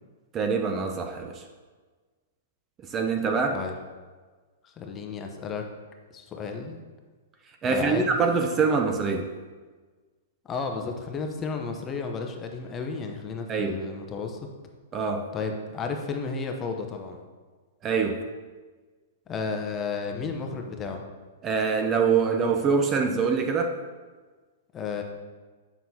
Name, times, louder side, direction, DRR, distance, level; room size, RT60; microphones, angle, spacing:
voice 1, 0.3-1.4 2.9-3.6 7.6-9.3 13.5-13.8 14.9-15.3 17.8-18.2 21.4-23.8, right 5 dB, 25° right, 0.5 m, -24 dB
voice 2, 4.6-5.6 6.1-6.8 7.6-8.2 10.4-14.5 15.3-17.2 19.3-21.0 24.7-25.0, left 4 dB, 20° left, 0.8 m, -33 dB
7.3 x 5.9 x 2.8 m
hypercardioid pair, 135°, 0 cm